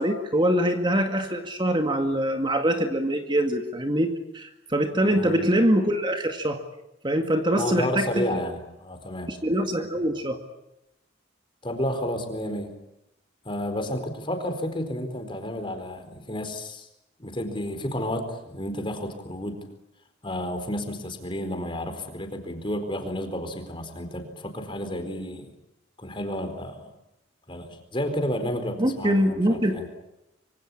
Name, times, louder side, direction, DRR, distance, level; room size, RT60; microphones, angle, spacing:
voice 1, 0.0-6.6 7.0-8.4 9.3-10.4 28.8-29.8, right 1 dB, 25° right, 5 dB, 2.0 m, -24 dB
voice 2, 5.1-5.4 7.6-9.3 11.6-12.7 13.4-16.9 17.2-19.6 20.2-25.5 26.0-26.9 27.5-29.9, equal, 25° left, 7 dB, 4.4 m, -31 dB
26.0 x 25.5 x 8.6 m, 0.88 s
head